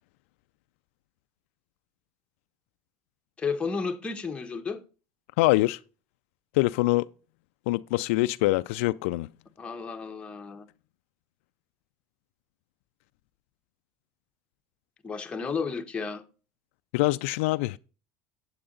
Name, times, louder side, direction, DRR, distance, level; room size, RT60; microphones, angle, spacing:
voice 1, 3.4-4.8 9.6-10.7 15.0-16.2, left 5 dB, 15° left, 1.0 m, -32 dB
voice 2, 5.4-5.8 6.5-7.1 7.7-9.3 16.9-17.8, left 19 dB, 80° left, 0.3 m, -24 dB
8.7 x 7.9 x 3.8 m
supercardioid pair, 130°, 7 cm